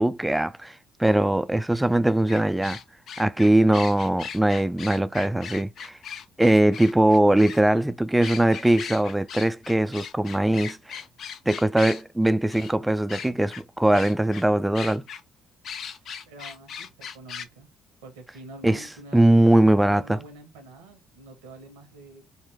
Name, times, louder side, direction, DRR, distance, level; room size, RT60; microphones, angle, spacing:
voice 1, 0.0-2.8 3.2-6.0 6.4-10.8 11.5-15.0 18.6-18.8 19.1-20.2, right 1 dB, 10° right, 0.4 m, -21 dB
sound 1, 2.3-7.6 8.2-12.0 12.5-12.7 13.1-13.6 13.9-14.4 14.7-15.2 15.6-17.5, left 7 dB, 55° left, 0.5 m, -38 dB
voice 2, 15.9-17.7 18.0-19.2 19.6-22.2, right 2 dB, 80° right, 0.9 m, -46 dB
3.0 x 2.2 x 3.5 m
hypercardioid pair, 50°, 0 cm